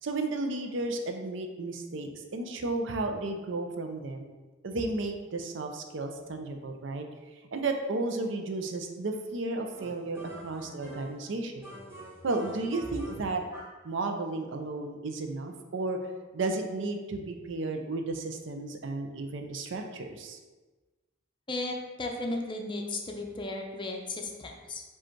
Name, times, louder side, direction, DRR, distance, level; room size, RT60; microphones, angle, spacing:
voice 1, 0.0-4.3 4.6-7.0 7.5-11.7 12.2-13.4 13.8-20.4, right 2 dB, 70° right, 5 dB, 0.5 m, -33 dB
sound 1, 9.8-11.3 11.6-13.8, equal, 15° right, 0.9 m, -46 dB
voice 2, 21.5-24.8, left 2 dB, 25° left, 1 dB, 0.6 m, -35 dB
4.9 x 2.4 x 4.5 m, 1.2 s
head